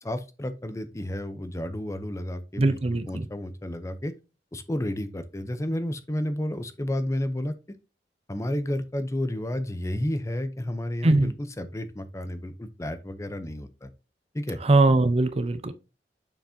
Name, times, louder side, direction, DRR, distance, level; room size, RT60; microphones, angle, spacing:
voice 1, 0.0-2.8 3.1-4.1 4.5-7.5 8.3-13.9 14.3-14.6, left 1 dB, 15° left, 0.6 m, -31 dB
voice 2, 2.6-3.3 11.0-11.3 14.6-15.7, right 2 dB, 35° right, 0.6 m, -21 dB
7.1 x 5.8 x 2.7 m
head